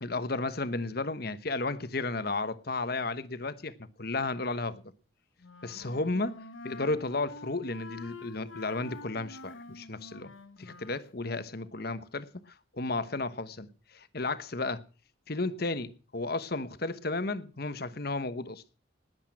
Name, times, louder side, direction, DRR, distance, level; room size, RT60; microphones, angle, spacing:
voice 1, 0.0-3.7 4.0-4.8 5.6-10.3 10.6-12.3 12.7-14.8 15.3-18.6, left 3 dB, 50° left, 1.1 m, -33 dB
Wind instrument woodwind instrument, 5.4-11.0, left 3 dB, 85° left, 1.4 m, -47 dB
19.5 x 8.3 x 6.1 m
head